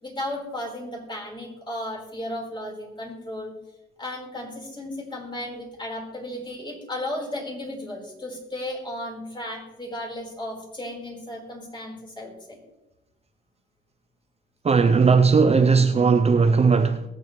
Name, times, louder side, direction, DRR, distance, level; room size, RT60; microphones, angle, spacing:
voice 1, 0.0-3.5 4.0-12.6, left 1 dB, 25° left, 4.5 m, -34 dB
voice 2, 14.6-17.0, right 5 dB, 30° right, 0.7 m, -18 dB
22.0 x 7.7 x 3.3 m
cardioid pair, 90°, 20 cm